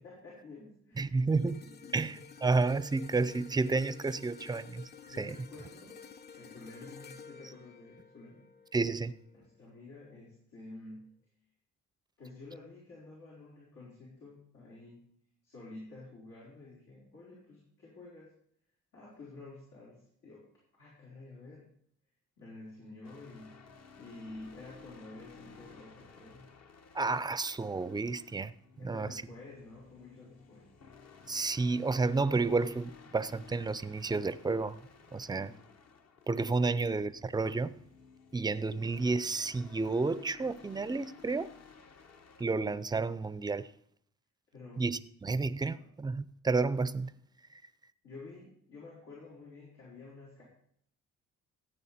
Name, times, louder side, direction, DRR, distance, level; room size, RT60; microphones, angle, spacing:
voice 1, 0.0-1.2 1.6-2.3 5.1-6.1 6.3-8.5 9.3-11.2 12.2-15.1 15.4-18.3 18.9-20.5 20.8-21.7 22.4-23.6 24.0-26.4 28.8-30.7 35.2-35.6 44.5-44.9 45.6-45.9 48.0-50.4, left 2 dB, 90° left, 4.6 m, -50 dB
voice 2, 1.0-1.6 1.9-4.9 5.2-5.4 8.7-9.1 26.9-28.5 28.8-29.2 31.3-34.8 35.1-35.5 36.3-37.8 38.3-41.5 42.4-43.7 44.8-47.1, right 3 dB, 15° right, 0.5 m, -31 dB
sound 1, 1.3-9.6 10.1-10.3, left 6 dB, 35° left, 0.7 m, -52 dB
sound 2, 23.0-42.4, left 5 dB, 55° left, 1.3 m, -56 dB
15.0 x 8.9 x 4.3 m
cardioid pair, 90°, 30 cm